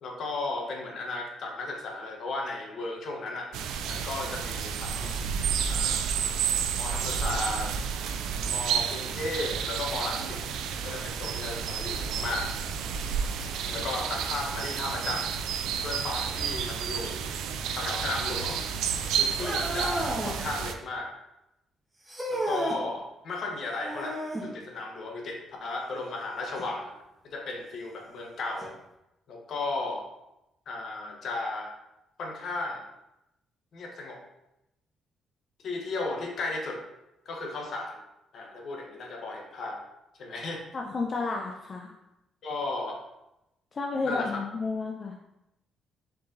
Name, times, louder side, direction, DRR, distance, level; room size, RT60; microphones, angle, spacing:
voice 1, 0.0-3.5 3.9-5.1 5.7-6.3 6.7-7.7 8.5-10.4 10.8-12.5 13.7-15.3 15.8-17.3 17.7-18.6 19.2-21.1 22.3-26.9 27.2-28.7 29.3-30.0 30.7-31.7 32.2-32.8 33.7-34.2 35.6-36.8 37.2-38.0 38.3-39.8 40.2-40.6 42.4-43.0 44.0-44.4, left 2 dB, 65° left, 0 dB, 1.0 m, -35 dB
sound 1, 3.5-20.7, right 7 dB, 90° right, 0.3 m, -31 dB
sound 2, 19.4-20.4 22.1-22.8 23.8-24.5 26.6-26.7 27.5-27.6 28.6-28.7, right 1 dB, 15° right, 1.1 m, -32 dB
voice 2, 40.7-41.9 43.7-45.2, left 3 dB, 40° left, 1 dB, 0.4 m, -31 dB
4.6 x 3.6 x 2.6 m, 0.90 s
cardioid pair, 90°, 0 cm